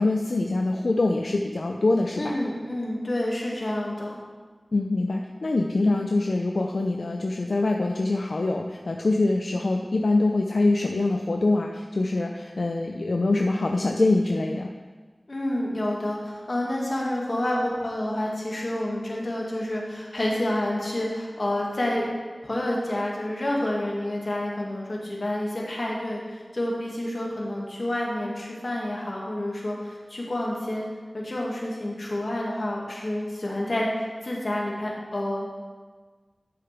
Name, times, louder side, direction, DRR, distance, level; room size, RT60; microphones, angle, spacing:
voice 1, 0.0-2.4 4.7-14.7, left 2 dB, 85° left, 2 dB, 0.5 m, -24 dB
voice 2, 2.2-4.2 15.3-22.1 22.4-30.9 31.1-33.9 34.2-35.6, left 1 dB, 60° left, -3 dB, 2.2 m, -29 dB
12.5 x 6.7 x 3.6 m, 1.4 s
wide cardioid pair, 60°, 0 cm